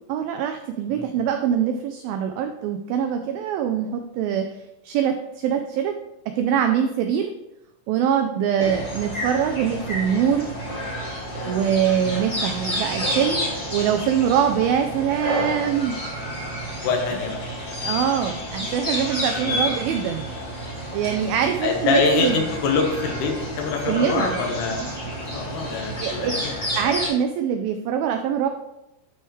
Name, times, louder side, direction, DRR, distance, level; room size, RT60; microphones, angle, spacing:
voice 1, 0.1-4.6 4.8-5.9 6.3-7.3 7.9-10.5 11.5-16.0 17.8-20.3 20.9-22.5 23.9-24.3 26.0-26.4 26.7-28.5, right 8 dB, 90° right, 5 dB, 2.0 m, -23 dB
sound 1, 8.6-27.1, equal, 35° left, 0.6 m, -30 dB
voice 2, 11.9-12.2 16.8-17.4 19.4-19.6 21.6-24.9 25.3-26.5, left 4 dB, 80° left, 2 dB, 3.2 m, -25 dB
12.0 x 4.7 x 3.1 m, 0.91 s
omnidirectional pair, 4.7 m